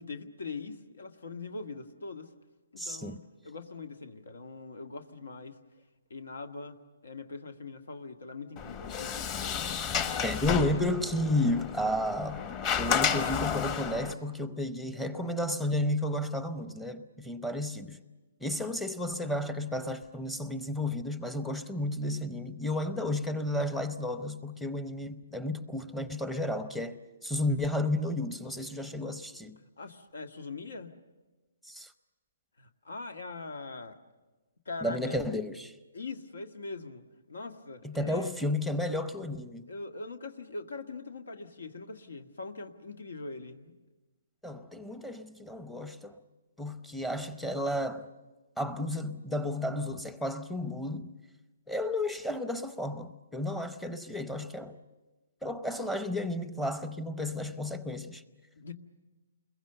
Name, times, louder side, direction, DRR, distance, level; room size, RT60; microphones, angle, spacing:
voice 1, 0.0-2.3 2.7-3.2 3.4-5.6 6.1-9.6 10.0-10.2 29.8-30.9 32.6-33.9 34.6-35.2 35.9-37.0 37.3-38.4 39.7-43.8 58.6-58.7, left 3 dB, 90° left, 1.7 m, -42 dB
voice 2, 2.8-3.2 10.2-12.4 12.8-18.0 18.4-29.6 31.6-31.9 34.8-35.7 37.8-39.7 44.4-46.2 46.6-48.1 48.6-51.1 51.7-54.8 55.4-58.2, left 1 dB, 5° left, 0.7 m, -32 dB
Sliding door, 8.6-14.1, left 7 dB, 25° left, 1.1 m, -32 dB
29.5 x 22.0 x 6.8 m
hypercardioid pair, 165°, 0 cm